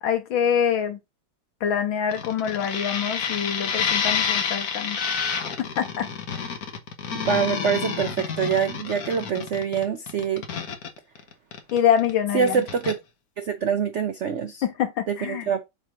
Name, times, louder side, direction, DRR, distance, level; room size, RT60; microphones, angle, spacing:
voice 1, 0.0-1.0 1.6-5.0 5.6-6.1 11.7-12.6 14.6-15.5, left 8 dB, 80° left, 2.0 m, -25 dB
sound 1, 2.1-12.1 12.4-12.9, left 6 dB, 55° left, 1.5 m, -29 dB
voice 2, 7.3-10.4 12.3-13.0 13.4-14.6 15.1-15.6, right 7 dB, 85° right, 0.6 m, -25 dB
7.6 x 3.1 x 4.9 m
omnidirectional pair, 2.1 m